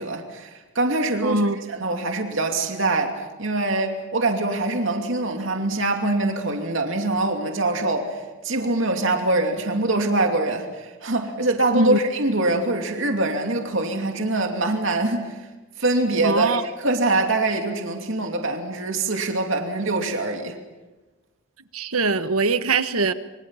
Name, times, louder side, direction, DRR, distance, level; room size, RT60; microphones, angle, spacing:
voice 1, 0.0-15.5 15.8-20.6, right 2 dB, 60° right, 3 dB, 2.7 m, -24 dB
voice 2, 1.2-1.6 11.7-12.0 16.2-16.6 21.7-23.1, right 3 dB, 85° right, 11 dB, 1.4 m, -22 dB
26.5 x 26.5 x 5.8 m, 1.2 s
head